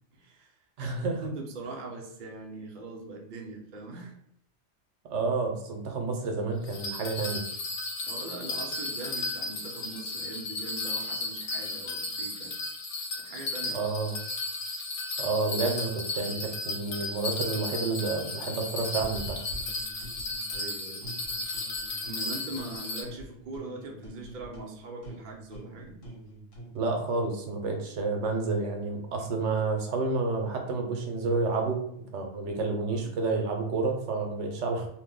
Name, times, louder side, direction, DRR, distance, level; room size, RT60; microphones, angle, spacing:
voice 1, 0.1-0.6 1.2-4.1 8.0-12.5 13.2-13.9 20.5-21.1 22.1-26.0 32.9-33.2, right 2 dB, 55° right, 1 dB, 0.6 m, -41 dB
voice 2, 0.8-1.3 5.0-7.4 13.7-14.2 15.2-19.4 26.7-31.8 32.1-34.9, right 3 dB, 75° right, 3 dB, 0.9 m, -30 dB
Bell, 6.7-23.0, left 2 dB, 70° left, 0.9 m, -35 dB
sound 1, 19.0-20.7 21.0-22.8 23.0-26.8, right 1 dB, 85° left, 1.2 m, -44 dB
2.6 x 2.1 x 3.6 m, 0.74 s
omnidirectional pair, 1.3 m